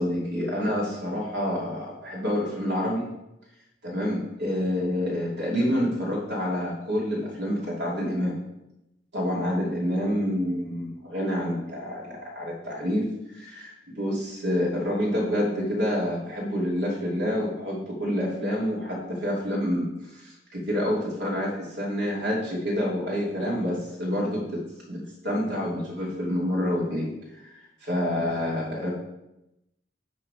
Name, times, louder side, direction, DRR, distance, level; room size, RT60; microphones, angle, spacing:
voice 1, 0.0-3.0 3.8-8.4 9.1-13.1 13.3-27.1 27.4-27.5 27.8-28.9, equal, 75° right, -4 dB, 2.8 m, -28 dB
10.5 x 3.9 x 4.9 m, 0.90 s
head